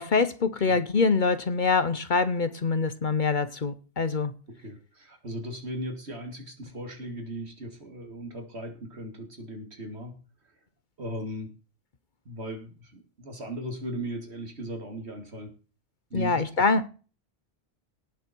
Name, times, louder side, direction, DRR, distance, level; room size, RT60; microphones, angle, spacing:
voice 1, 0.0-4.3 16.1-16.9, left 4 dB, 50° left, 0.9 m, -25 dB
voice 2, 4.6-10.2 11.0-11.5 12.2-15.5 16.1-16.4, right 1 dB, 70° right, 2.9 m, -37 dB
18.0 x 7.2 x 4.6 m
omnidirectional pair, 1.1 m